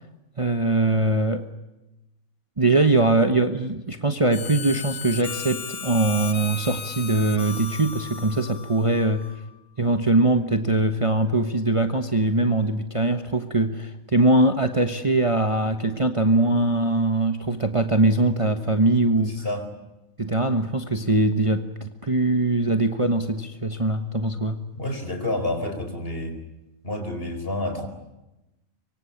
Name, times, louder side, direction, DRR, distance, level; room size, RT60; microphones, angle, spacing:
voice 1, 0.4-1.5 2.6-9.3 9.8-19.3 20.2-24.6, right 2 dB, 25° right, 8 dB, 1.3 m, -22 dB
Harmonica, 4.3-9.5, left 7 dB, 65° left, 1.6 m, -36 dB
voice 2, 19.2-19.7 24.7-26.4 26.8-27.9, left 1 dB, 40° left, 8 dB, 4.6 m, -29 dB
24.5 x 24.5 x 8.6 m, 0.95 s
omnidirectional pair, 1.4 m